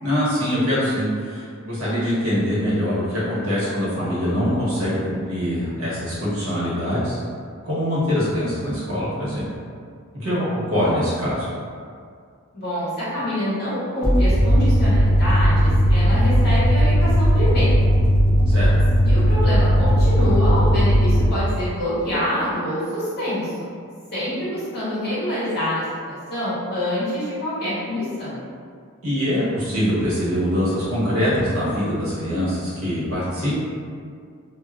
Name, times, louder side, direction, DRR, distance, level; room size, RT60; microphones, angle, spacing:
voice 1, 0.0-7.2 7.6-9.5 10.1-11.5 18.5-18.7 29.0-33.5, equal, 85° right, -10 dB, 1.1 m, -23 dB
voice 2, 12.5-17.8 19.0-23.7 24.1-28.4, left 1 dB, 50° left, -10 dB, 1.0 m, -26 dB
sound 1, 14.0-21.3, equal, 15° right, 0.6 m, -17 dB
2.6 x 2.4 x 2.3 m, 2.2 s
head